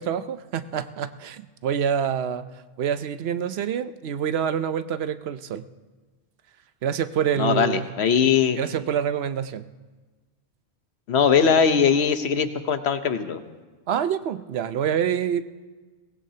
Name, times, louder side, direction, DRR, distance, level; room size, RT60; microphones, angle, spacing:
voice 1, 0.0-2.5 2.8-5.7 6.8-7.9 8.6-9.6 13.9-15.4, right 8 dB, 75° right, 12 dB, 0.9 m, -26 dB
voice 2, 7.4-8.6 11.1-13.4, left 7 dB, 80° left, 9 dB, 1.2 m, -20 dB
23.0 x 18.5 x 2.8 m, 1.3 s
omnidirectional pair, 1.1 m